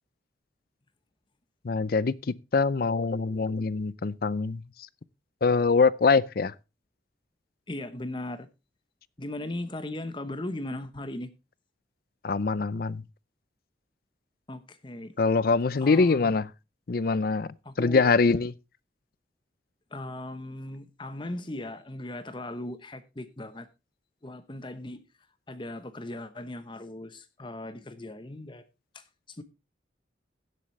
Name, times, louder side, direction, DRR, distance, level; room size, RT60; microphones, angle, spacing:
voice 1, 1.6-4.6 5.4-6.5 12.2-13.0 15.2-16.5 16.9-18.5, left 4 dB, 55° left, 0.5 m, -24 dB
voice 2, 7.7-8.5 9.2-11.3 14.5-15.1 15.8-16.4 17.6-18.0 19.9-23.7 24.2-25.0 25.5-28.6 28.9-29.4, left 1 dB, 25° left, 0.9 m, -38 dB
16.5 x 7.6 x 3.2 m
head